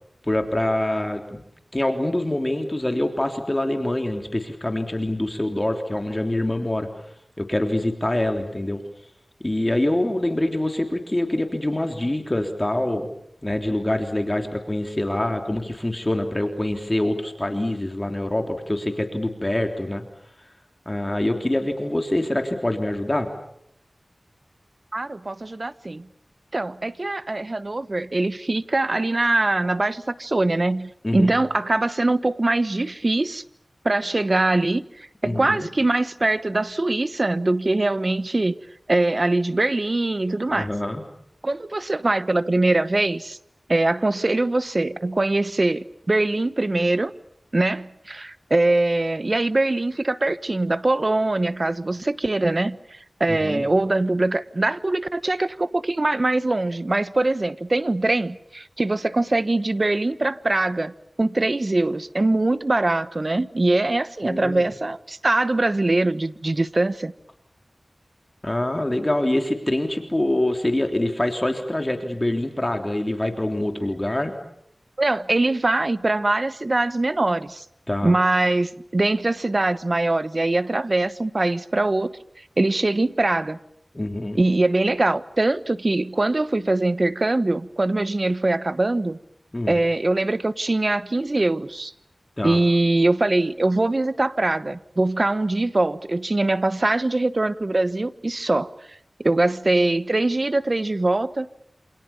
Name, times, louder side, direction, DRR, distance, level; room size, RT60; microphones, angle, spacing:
voice 1, 0.3-1.4 1.7-6.9 7.4-8.8 9.4-13.1 13.4-20.0 20.8-23.3 31.0-31.3 35.2-35.7 40.5-41.0 53.3-53.7 64.2-64.6 68.4-74.3 77.9-78.1 83.9-84.4 89.5-89.8 92.4-92.6, left 1 dB, 25° left, 3.3 m, -25 dB
voice 2, 24.9-26.1 26.5-33.4 33.8-38.6 38.9-40.7 41.4-43.4 43.7-47.1 47.5-60.9 61.2-67.1 75.0-77.6 78.0-82.1 82.6-83.6 84.3-89.2 89.7-91.9 92.4-98.7 99.2-101.5, right 2 dB, 45° right, 1.1 m, -22 dB
28.0 x 27.5 x 7.1 m
wide cardioid pair, 65°, 0 cm